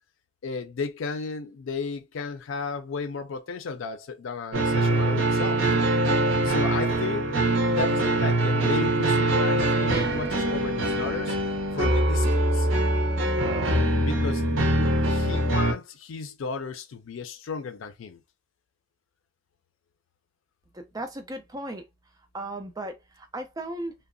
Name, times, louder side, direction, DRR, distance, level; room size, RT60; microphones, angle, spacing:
voice 1, 0.4-5.6 6.4-7.3 7.7-11.4 11.7-12.7 14.0-18.2, left 4 dB, 85° left, 0.4 m, -34 dB
sound 1, 4.5-15.7, right 1 dB, 75° right, 0.6 m, -23 dB
voice 2, 20.7-21.8 22.3-23.9, right 1 dB, 20° right, 0.4 m, -36 dB
2.8 x 2.0 x 2.5 m
head